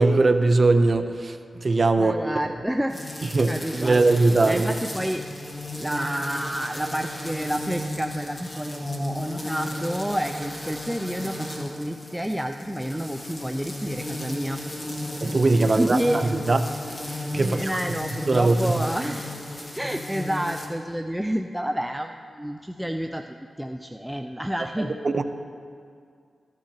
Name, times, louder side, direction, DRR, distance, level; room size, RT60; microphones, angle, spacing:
voice 1, 0.0-2.2 3.2-4.7 15.2-16.7 17.3-17.7 18.3-18.8 24.8-25.2, right 3 dB, 45° right, 8 dB, 0.7 m, -21 dB
voice 2, 1.9-3.0 3.5-5.2 5.8-14.6 15.8-16.3 17.4-19.4 19.8-24.9, equal, 5° right, 5 dB, 0.4 m, -29 dB
sound 1, 2.9-20.7, left 1 dB, 25° left, 1.8 m, -35 dB
14.5 x 13.5 x 2.9 m, 2.2 s
cardioid pair, 65°, 0 cm